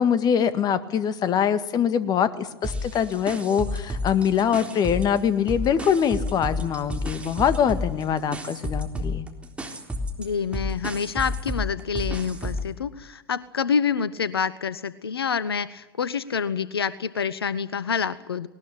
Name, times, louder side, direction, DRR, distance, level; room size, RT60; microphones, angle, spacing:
voice 1, 0.0-9.3, left 8 dB, 30° left, 13 dB, 1.9 m, -23 dB
sound 1, 2.6-5.2 5.5-12.7, left 1 dB, 10° right, 3.7 m, -31 dB
voice 2, 10.2-18.5, left 6 dB, 80° left, 17 dB, 1.0 m, -27 dB
20.0 x 19.5 x 10.0 m, 0.99 s
figure-of-eight pair, 95°, 13 cm